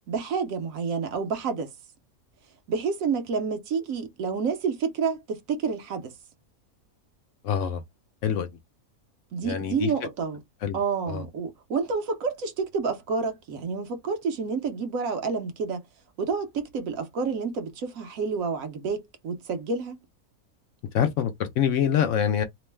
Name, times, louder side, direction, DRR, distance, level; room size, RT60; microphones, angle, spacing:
voice 1, 0.1-1.7 2.7-6.1 9.3-10.4 10.7-15.8 16.2-20.0, right 5 dB, 70° right, 1.1 m, -29 dB
voice 2, 7.4-7.8 8.2-8.5 9.4-9.9 10.6-10.8 11.1-11.2 20.9-22.4, left 8 dB, 70° left, 0.8 m, -25 dB
3.0 x 2.0 x 3.2 m
omnidirectional pair, 1.5 m